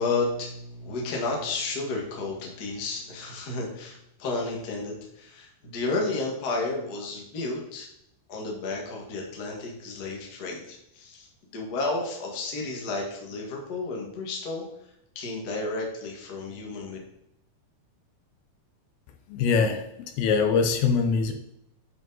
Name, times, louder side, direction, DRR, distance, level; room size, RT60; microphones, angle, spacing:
voice 1, 0.0-7.9 8.3-11.3 11.5-14.6 15.1-17.0, left 3 dB, 40° left, 0 dB, 1.4 m, -32 dB
voice 2, 19.3-21.3, left 5 dB, 80° left, 6 dB, 2.7 m, -23 dB
9.8 x 5.1 x 4.0 m, 0.77 s
omnidirectional pair, 4.3 m